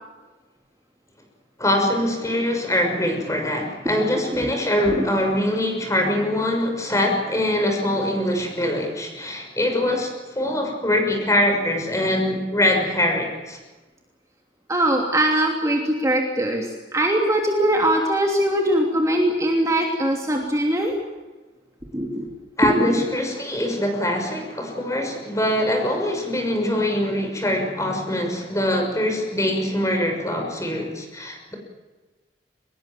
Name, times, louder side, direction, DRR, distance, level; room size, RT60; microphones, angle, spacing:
voice 1, 1.6-13.6 22.6-31.5, left 1 dB, 20° left, 3 dB, 6.5 m, -23 dB
voice 2, 14.7-20.9 21.9-22.3 22.7-23.0, right 1 dB, 20° right, 1 dB, 3.0 m, -21 dB
24.5 x 21.5 x 7.6 m, 1.2 s
head